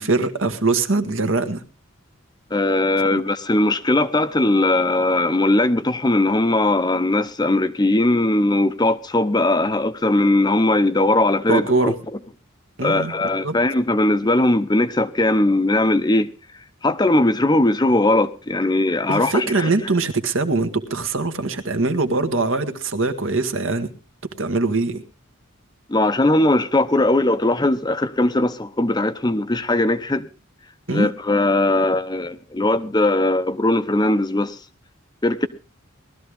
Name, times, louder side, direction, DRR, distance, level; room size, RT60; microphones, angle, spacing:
voice 1, 0.0-1.6 3.1-3.2 11.5-11.9 12.8-13.1 13.4-13.6 19.1-23.9 24.4-25.0 30.9-31.1, right 3 dB, 70° right, 1.6 m, -22 dB
voice 2, 2.5-11.9 12.8-16.3 16.8-19.7 25.9-30.3 30.9-34.6 35.2-35.5, left 2 dB, 20° left, 0.7 m, -19 dB
19.0 x 13.0 x 3.5 m
head